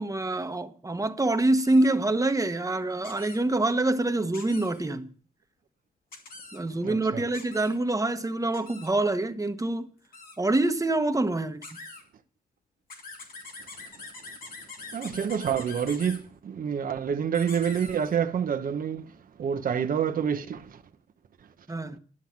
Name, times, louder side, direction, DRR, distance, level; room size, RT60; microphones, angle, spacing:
voice 1, 0.0-5.1 6.5-9.9 10.4-11.6 21.7-22.0, right 2 dB, 25° right, 1.2 m, -26 dB
sound 1, 1.6-1.9 3.0-3.4 4.3-4.8 6.1-6.6 7.3-7.8 8.5-8.9 10.0-10.4 11.6-12.0 12.9-16.2 17.3-18.2, left 3 dB, 80° left, 2.7 m, -44 dB
voice 2, 6.8-7.2 14.9-19.1 19.4-20.8, right 7 dB, 70° right, 1.0 m, -28 dB
12.0 x 7.7 x 7.2 m
cardioid pair, 80°, 15 cm